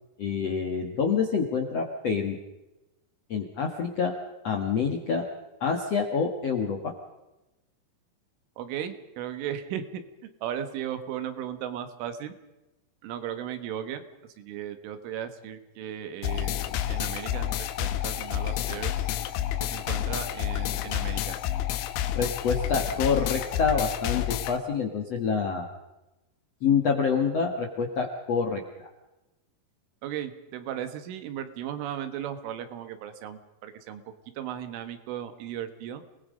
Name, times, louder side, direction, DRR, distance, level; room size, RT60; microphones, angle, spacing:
voice 1, 0.2-2.4 3.3-4.2 4.4-5.3 5.6-6.9 22.2-25.7 26.6-28.9, left 5 dB, 65° left, 2 dB, 1.6 m, -27 dB
voice 2, 8.6-10.0 10.4-12.3 13.0-14.0 14.4-18.9 19.6-21.4 30.0-34.0 34.4-36.0, right 10 dB, 85° right, 10 dB, 4.1 m, -36 dB
sound 1, 16.2-24.6, left 12 dB, 80° left, 3.5 m, -29 dB
28.5 x 20.0 x 5.2 m, 0.99 s
omnidirectional pair, 5.5 m